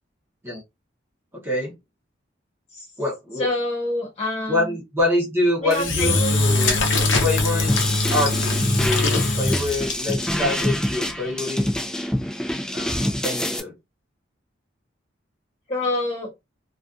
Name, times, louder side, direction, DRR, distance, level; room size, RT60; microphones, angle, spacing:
voice 1, 1.3-1.7 3.0-3.5 4.5-6.8 7.2-7.7 8.1-11.7 12.7-13.7, left 1 dB, 15° right, 0.8 m, -25 dB
voice 2, 3.4-4.8 5.6-6.3 6.6-6.8 15.7-16.3, left 2 dB, 35° left, 1.3 m, -26 dB
Engine / Drill, 5.7-10.2, left 2 dB, 80° left, 0.6 m, -22 dB
sound 1, 7.7-13.6, left 1 dB, 5° left, 0.3 m, -26 dB
2.4 x 2.3 x 2.4 m
head